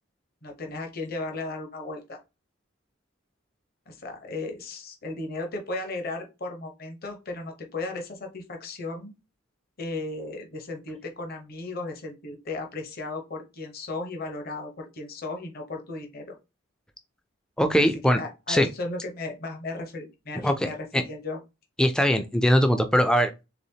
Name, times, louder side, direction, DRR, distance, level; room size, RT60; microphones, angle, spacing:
voice 1, 0.4-2.2 3.9-9.1 9.8-16.4 17.8-21.4, left 2 dB, 45° left, 0.9 m, -35 dB
voice 2, 17.6-18.2 18.5-18.7 20.4-21.0 21.8-23.3, equal, 5° left, 0.3 m, -21 dB
4.0 x 3.4 x 2.8 m
head